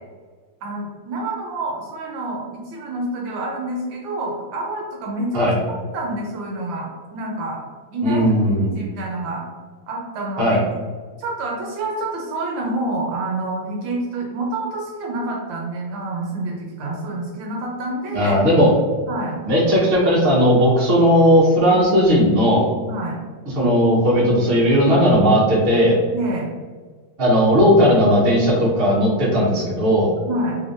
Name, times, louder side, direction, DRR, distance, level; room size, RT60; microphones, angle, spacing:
voice 1, 0.6-5.4 5.9-7.6 7.9-8.2 8.6-9.4 9.9-10.6 11.2-18.3 19.1-19.4 22.9-23.2 26.1-26.5 30.3-30.6, right 2 dB, 70° right, -1 dB, 1.3 m, -27 dB
voice 2, 8.0-8.7 10.4-10.6 18.1-18.7 19.4-22.7 23.5-25.9 27.2-30.1, equal, 40° right, -5 dB, 0.9 m, -16 dB
3.6 x 3.2 x 2.6 m, 1.5 s
omnidirectional pair, 2.3 m